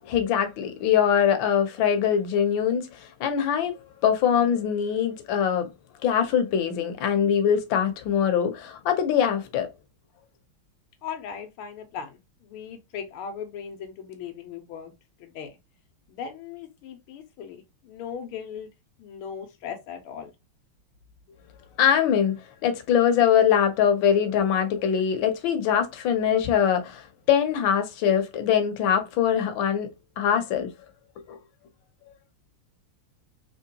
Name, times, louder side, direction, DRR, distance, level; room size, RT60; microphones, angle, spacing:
voice 1, 0.1-5.7 6.0-9.7 21.8-29.9 30.2-30.7 31.3-31.4, left 8 dB, 70° left, 1.4 m, -23 dB
voice 2, 11.0-14.9 15.2-15.5 16.1-18.7 19.0-20.3, left 7 dB, 90° left, 1.6 m, -38 dB
3.7 x 2.9 x 2.7 m
omnidirectional pair, 2.3 m